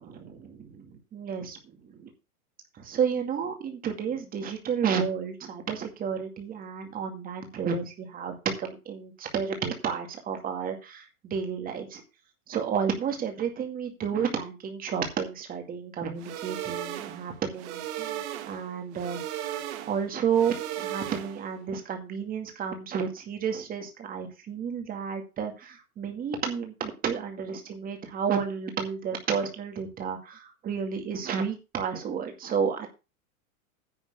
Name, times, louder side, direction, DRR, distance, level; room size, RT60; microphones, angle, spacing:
voice 1, 0.0-2.1 2.8-12.0 12.5-32.9, right 7 dB, 20° right, 4 dB, 2.1 m, -31 dB
sound 1, 16.2-21.6, right 12 dB, 50° right, 1.4 m, -36 dB
10.0 x 4.5 x 7.8 m, 0.29 s
supercardioid pair, 155°, 44 cm